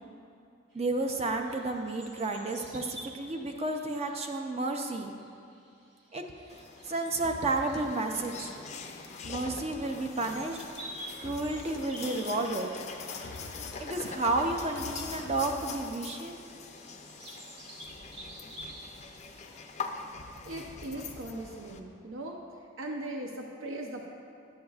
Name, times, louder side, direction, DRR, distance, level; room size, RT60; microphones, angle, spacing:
voice 1, 0.7-5.2 6.1-6.2 6.9-8.5 9.2-10.6 11.2-12.7 13.8-16.4, right 2 dB, 30° right, 4 dB, 0.4 m, -31 dB
sound 1, 0.7-19.7, right 1 dB, 60° right, 1.5 m, -50 dB
sound 2, 6.5-21.8, left 5 dB, 35° left, 0.4 m, -43 dB
sound 3, 7.2-16.2, left 2 dB, 80° left, 0.7 m, -48 dB
voice 2, 20.4-22.4 22.8-24.1, right 1 dB, 85° right, 1 dB, 0.6 m, -39 dB
10.5 x 8.0 x 2.3 m, 2.6 s
head